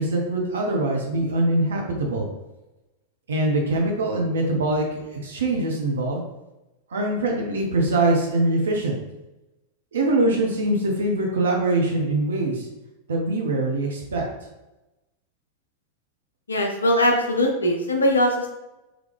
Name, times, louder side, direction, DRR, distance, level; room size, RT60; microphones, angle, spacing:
voice 1, 0.0-2.3 3.3-6.2 6.9-9.0 9.9-12.7 13.1-14.3, right 2 dB, 65° right, 0 dB, 0.7 m, -23 dB
voice 2, 16.5-18.5, left 1 dB, 75° left, 2 dB, 0.7 m, -21 dB
3.8 x 3.2 x 3.3 m, 1.0 s
figure-of-eight pair, 90°, 0 cm